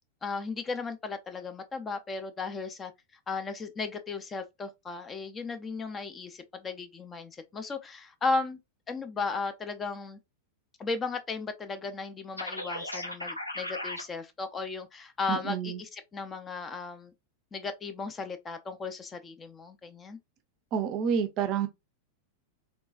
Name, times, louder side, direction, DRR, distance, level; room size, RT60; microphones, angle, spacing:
voice 1, 0.2-2.9 3.3-8.6 8.9-10.2 10.8-17.1 17.5-20.2, left 4 dB, 20° left, 0.5 m, -35 dB
sound 1, 12.4-14.0, left 1 dB, 85° left, 0.6 m, -36 dB
voice 2, 15.3-15.8 20.7-21.7, right 7 dB, 40° right, 0.5 m, -29 dB
3.8 x 2.4 x 2.4 m
figure-of-eight pair, 90°, 0 cm